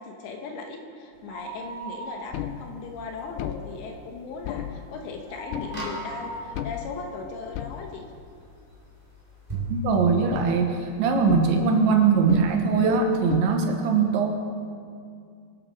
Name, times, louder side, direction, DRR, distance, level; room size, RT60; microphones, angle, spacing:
voice 1, 0.0-8.1, left 4 dB, 70° left, 2 dB, 3.1 m, -38 dB
sound 1, 1.1-2.8 3.1-3.2 3.7-8.1 8.6-8.7 9.5-9.6 9.8-9.9, right 1 dB, 45° right, 4.4 m, -40 dB
sound 2, 2.3-9.2 9.6-9.7 10.0-13.4, left 11 dB, 85° left, 3.2 m, -36 dB
sound 3, 4.5-4.6 5.6-6.6 9.5-9.8, right 3 dB, 10° right, 2.3 m, -34 dB
voice 2, 9.7-14.3, right 5 dB, 75° right, 3 dB, 3.3 m, -21 dB
24.0 x 8.8 x 6.4 m, 2.3 s
omnidirectional pair, 5.7 m